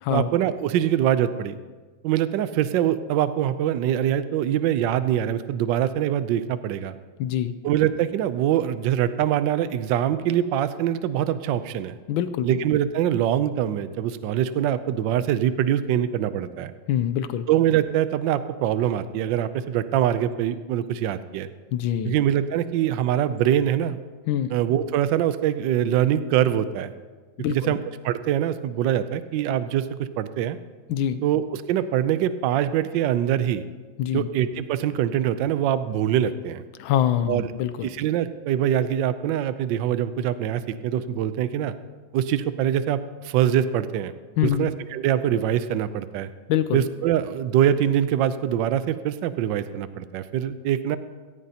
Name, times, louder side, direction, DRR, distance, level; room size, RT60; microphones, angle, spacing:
voice 1, 0.1-1.6 2.0-6.9 7.6-12.0 12.4-16.7 17.5-21.5 22.0-24.0 24.5-26.9 27.5-30.6 31.2-33.6 34.1-36.6 37.3-37.5 37.8-41.7 42.1-44.1 44.4-46.3 46.7-51.0, right 10 dB, 75° right, 13 dB, 1.2 m, -24 dB
voice 2, 7.2-7.5 12.1-12.6 16.9-17.5 21.7-22.1 24.3-24.5 27.4-27.7 30.9-31.2 34.0-34.3 36.8-37.9 44.4-44.7 46.5-46.8, left 10 dB, 80° left, 12 dB, 1.3 m, -24 dB
17.5 x 14.5 x 2.8 m, 1.4 s
omnidirectional pair, 2.2 m